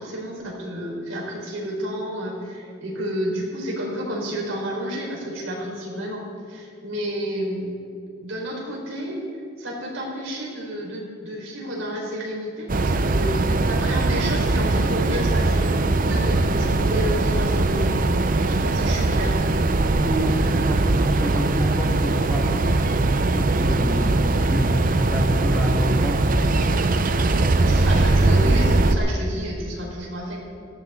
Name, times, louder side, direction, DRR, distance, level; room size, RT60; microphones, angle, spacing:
voice 1, 0.0-7.7 8.2-9.2 9.6-18.0 18.5-19.4 27.6-30.4, equal, 85° right, -2 dB, 4.3 m, -30 dB
sound 1, 12.7-29.0, right 2 dB, 45° right, 0.6 m, -20 dB
voice 2, 19.9-22.6 23.2-26.7, equal, ahead, -2 dB, 1.6 m, -28 dB
18.0 x 14.5 x 3.7 m, 2.3 s
head